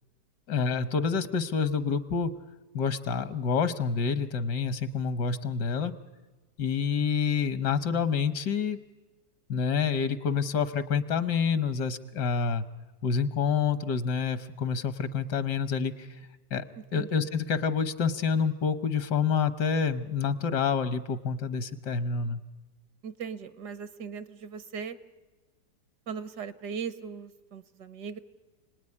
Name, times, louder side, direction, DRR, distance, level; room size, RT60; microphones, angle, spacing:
voice 1, 0.5-2.3 2.7-5.9 6.6-8.8 9.5-12.6 13.0-16.1 16.5-16.6 16.9-22.4, left 6 dB, 80° left, 13 dB, 1.7 m, -28 dB
voice 2, 23.0-25.0 26.1-28.2, right 6 dB, 75° right, 14 dB, 1.7 m, -38 dB
30.0 x 19.5 x 9.8 m, 1.2 s
omnidirectional pair, 1.8 m